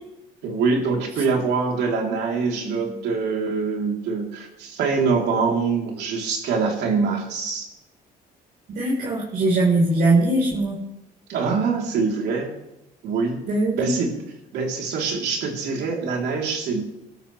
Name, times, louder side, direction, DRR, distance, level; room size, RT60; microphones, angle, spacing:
voice 1, 0.4-7.7 11.3-12.5 13.0-13.4 13.7-14.1 14.5-16.8, right 4 dB, 80° right, 0 dB, 4.0 m, -24 dB
voice 2, 8.7-10.7 13.5-13.9, right 2 dB, 60° right, -5 dB, 5.0 m, -20 dB
24.0 x 13.0 x 3.6 m, 0.89 s
cardioid pair, 110°, 17 cm